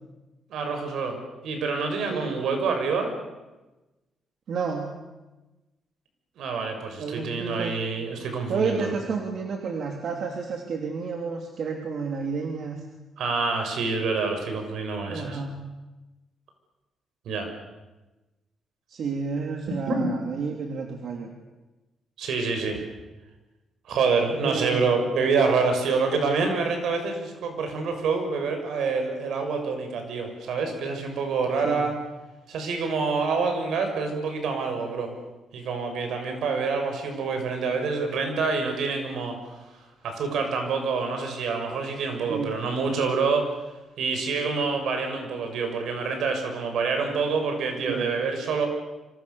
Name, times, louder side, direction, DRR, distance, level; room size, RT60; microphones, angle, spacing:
voice 1, 0.5-3.1 6.4-8.9 13.2-15.4 17.2-17.5 19.9-20.0 22.2-22.8 23.9-31.9 32.5-35.1 35.5-43.5 44.0-48.7, right 4 dB, 75° right, 5 dB, 6.6 m, -27 dB
voice 2, 4.5-5.0 7.0-7.8 8.5-12.8 15.1-15.6 18.9-21.3 24.4-24.8 31.6-31.9 42.3-42.6 47.9-48.1, right 5 dB, 55° right, 2 dB, 3.0 m, -30 dB
27.5 x 25.5 x 7.1 m, 1.1 s
cardioid pair, 155°, 0 cm